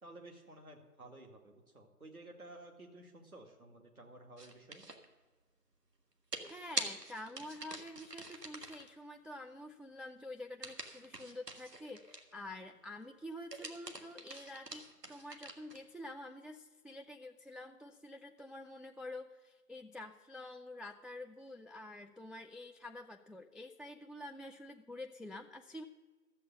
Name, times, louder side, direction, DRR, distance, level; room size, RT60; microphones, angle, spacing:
voice 1, 0.0-4.9, right 2 dB, 65° right, 2 dB, 2.4 m, -54 dB
sound 1, 4.4-5.0 6.3-8.9 10.6-12.4 13.3-15.9, right 2 dB, 85° right, 1.7 m, -44 dB
voice 2, 6.5-25.8, left 1 dB, ahead, 3 dB, 0.3 m, -48 dB
13.5 x 7.5 x 6.9 m, 1.3 s
figure-of-eight pair, 160°, 47 cm